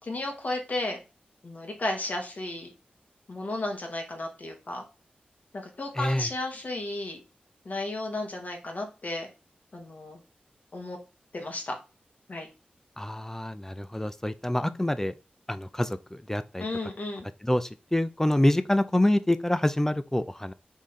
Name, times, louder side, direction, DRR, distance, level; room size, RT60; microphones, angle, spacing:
voice 1, 0.0-1.0 1.4-2.7 3.3-4.8 5.5-7.2 7.6-9.3 9.7-10.2 10.7-11.0 11.3-11.7 12.3-12.5 14.7-14.8 16.6-17.2, left 2 dB, 55° left, 1.7 m, -33 dB
voice 2, 6.0-6.3 13.0-15.1 15.5-16.6 17.4-20.5, left 1 dB, 15° left, 0.4 m, -26 dB
3.7 x 3.1 x 4.1 m
cardioid pair, 55°, 3 cm